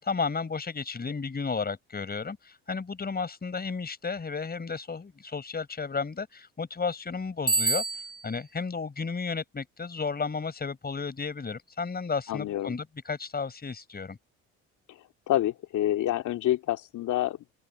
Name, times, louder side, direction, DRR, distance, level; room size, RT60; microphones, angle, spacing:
voice 1, 0.0-7.8 8.2-14.2, left 5 dB, 30° left, 5.6 m, -33 dB
Bicycle bell, 7.5-8.4, right 3 dB, 15° right, 0.9 m, -27 dB
voice 2, 12.3-12.8 15.3-17.5, left 13 dB, 60° left, 2.6 m, -27 dB
open air
hypercardioid pair, 65°, 33 cm